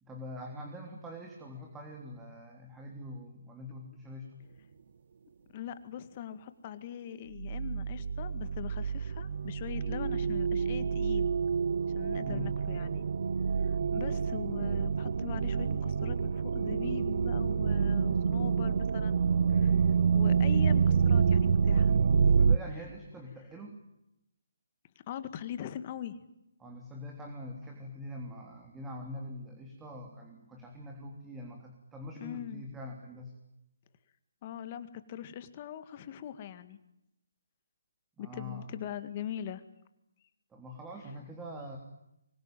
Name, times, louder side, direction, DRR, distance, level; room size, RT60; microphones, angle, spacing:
voice 1, 0.0-4.4 12.2-12.5 22.3-23.8 26.6-33.3 38.2-38.7 40.5-41.8, left 1 dB, 10° right, 2 dB, 3.5 m, -44 dB
voice 2, 5.5-11.3 11.9-13.0 13.6-19.2 19.5-19.8 20.1-22.0 25.1-26.2 32.2-32.6 34.4-36.8 38.2-39.6, left 10 dB, 35° left, 11 dB, 1.9 m, -41 dB
sound 1, 7.4-22.6, right 6 dB, 60° right, 0.9 m, -27 dB
25.0 x 22.5 x 9.2 m, 0.84 s
figure-of-eight pair, 150°, 0 cm